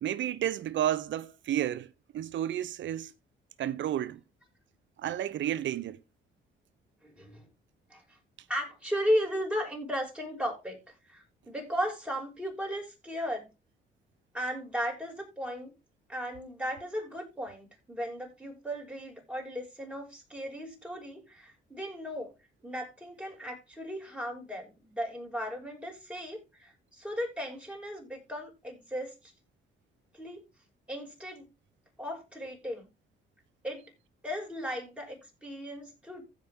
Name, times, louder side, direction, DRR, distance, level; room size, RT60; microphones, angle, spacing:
voice 1, 0.0-3.1 3.6-4.2 5.0-6.0, right 11 dB, 70° right, 0.9 m, -31 dB
voice 2, 7.0-7.5 7.9-8.0 8.5-10.8 11.1-13.5 14.3-15.7 16.1-22.3 22.6-29.3 30.1-30.4 30.9-31.5 32.0-32.9 33.6-33.8 34.2-36.2, equal, 5° right, 6.3 m, -36 dB
15.5 x 5.5 x 3.7 m
cardioid pair, 90°, 20 cm